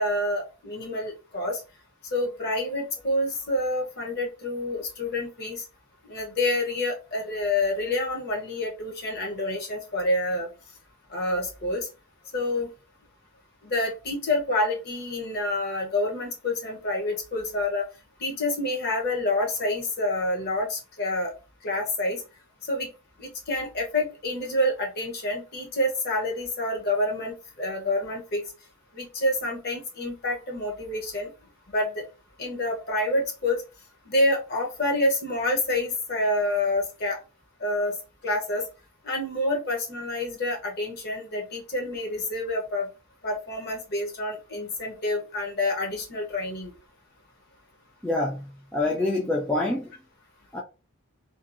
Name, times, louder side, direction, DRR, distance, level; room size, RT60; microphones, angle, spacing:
voice 1, 0.0-1.6 2.1-5.6 6.0-10.5 11.1-11.9 12.3-12.7 13.6-17.9 18.2-21.3 21.6-22.2 22.7-22.9 23.2-28.4 28.9-31.3 31.7-32.0 32.4-33.6 34.1-37.2 37.6-38.0 38.2-38.6 39.0-42.9 43.2-46.7, left 1 dB, 45° left, 0.7 m, -28 dB
voice 2, 48.0-49.9 50.5-50.6, left 2 dB, 5° left, 0.3 m, -26 dB
2.7 x 2.3 x 2.4 m
head